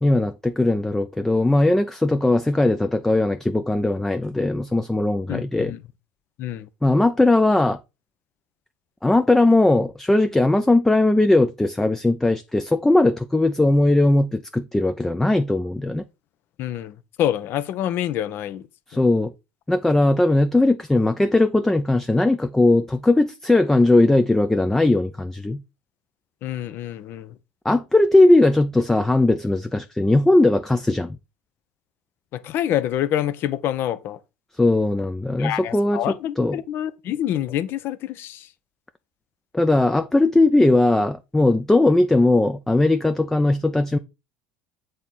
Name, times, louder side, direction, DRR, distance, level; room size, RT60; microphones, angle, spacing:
voice 1, 0.0-5.7 6.8-7.8 9.0-16.0 18.9-19.3 19.7-25.6 27.6-31.2 34.5-36.6 39.5-44.0, left 2 dB, 10° left, 0.5 m, -19 dB
voice 2, 5.3-5.8 6.4-6.7 16.6-18.6 18.9-19.1 26.4-27.3 32.3-34.2 35.4-38.5, left 11 dB, 55° left, 0.6 m, -27 dB
7.6 x 3.6 x 4.2 m
hypercardioid pair, 75°, 5 cm